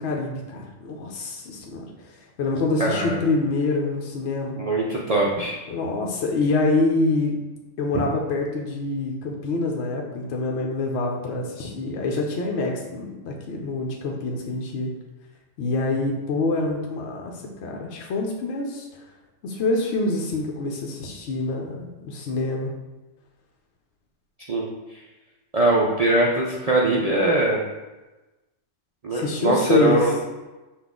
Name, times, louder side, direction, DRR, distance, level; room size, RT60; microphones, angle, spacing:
voice 1, 0.0-4.6 5.7-7.4 7.8-14.9 15.6-19.0 19.4-22.7 29.1-30.1, left 2 dB, 65° left, 0 dB, 0.8 m, -26 dB
voice 2, 2.8-3.2 4.6-5.6 24.5-25.0 25.5-27.6 29.0-30.1, right 2 dB, 60° right, -3 dB, 0.4 m, -21 dB
5.7 x 2.4 x 3.6 m, 1.1 s
omnidirectional pair, 1.3 m